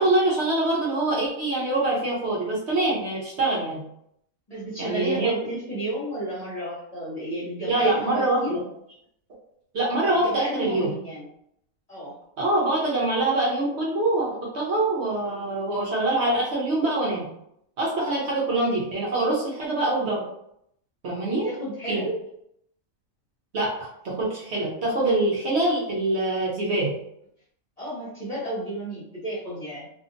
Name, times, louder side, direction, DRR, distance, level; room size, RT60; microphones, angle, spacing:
voice 1, 0.0-3.8 4.8-5.3 7.7-8.6 9.7-10.9 12.4-17.2 17.8-20.2 21.0-21.5 21.9-22.0 23.5-23.7 24.0-26.9, right 2 dB, 60° right, -5 dB, 0.9 m, -24 dB
voice 2, 4.5-8.6 10.2-11.2 11.9-12.1 21.2-22.2 27.8-29.9, right 1 dB, 35° left, -8 dB, 0.8 m, -32 dB
2.7 x 2.4 x 2.5 m, 0.75 s
omnidirectional pair, 1.4 m